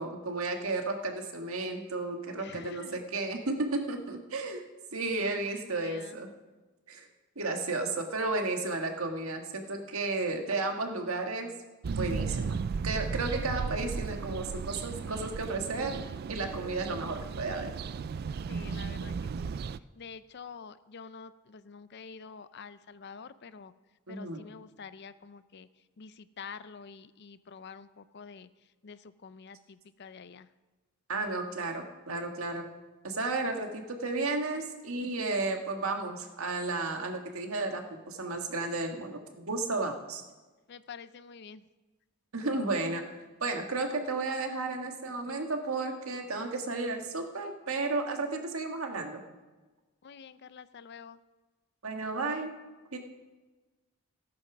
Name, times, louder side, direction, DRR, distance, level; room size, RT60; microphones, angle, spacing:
voice 1, 0.0-4.6 4.9-6.3 6.9-7.1 7.3-11.5 11.8-12.6 12.8-16.0 16.3-17.7 24.1-24.4 31.1-32.6 33.0-40.2 42.3-43.0 43.4-49.2 51.8-52.5 52.9-53.0, right 3 dB, 85° right, 4 dB, 1.6 m, -33 dB
voice 2, 2.4-3.0 5.0-6.2 13.5-13.6 18.5-19.5 20.0-23.7 24.1-25.7 26.0-28.5 28.8-30.5 40.7-41.6 50.0-51.2 52.2-52.5, left 6 dB, 50° left, 14 dB, 0.5 m, -47 dB
sound 1, 11.8-19.8, right 5 dB, 45° right, 0.3 m, -35 dB
15.5 x 8.7 x 6.0 m, 1.2 s
head